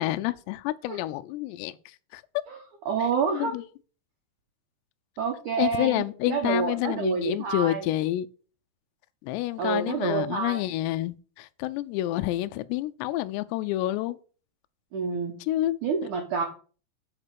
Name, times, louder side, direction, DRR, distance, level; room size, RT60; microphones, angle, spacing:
voice 1, 0.0-2.2 3.3-3.7 5.6-8.3 9.2-14.2 15.4-15.8, left 15 dB, 90° left, 2.4 m, -28 dB
voice 2, 2.9-3.6 5.2-7.8 9.6-10.6 14.9-15.3 15.8-16.4, right 6 dB, 85° right, 1.7 m, -28 dB
8.6 x 4.4 x 6.8 m
omnidirectional pair, 5.5 m